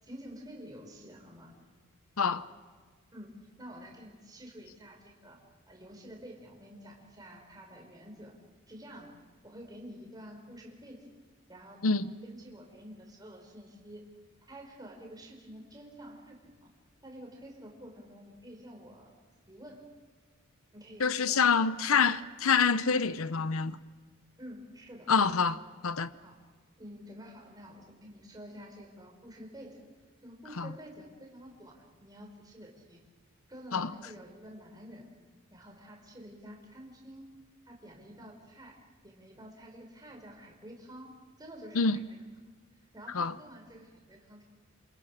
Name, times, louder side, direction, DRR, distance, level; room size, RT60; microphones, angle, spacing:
voice 1, 0.0-1.5 3.1-8.4 8.7-9.2 9.4-11.1 11.5-14.1 14.5-16.7 17.0-19.1 19.5-19.9 20.7-22.1 24.4-25.1 26.2-26.4 26.8-29.8 30.2-33.0 33.5-35.1 35.5-37.3 37.7-42.0 42.8-44.4, equal, 20° right, 5.5 m, -49 dB
voice 2, 2.2-2.5 11.8-12.1 21.0-23.8 25.1-26.1 30.6-30.7 33.7-33.9 41.7-42.0 43.1-43.3, left 5 dB, 75° left, 0.8 m, -26 dB
27.5 x 27.5 x 6.6 m
head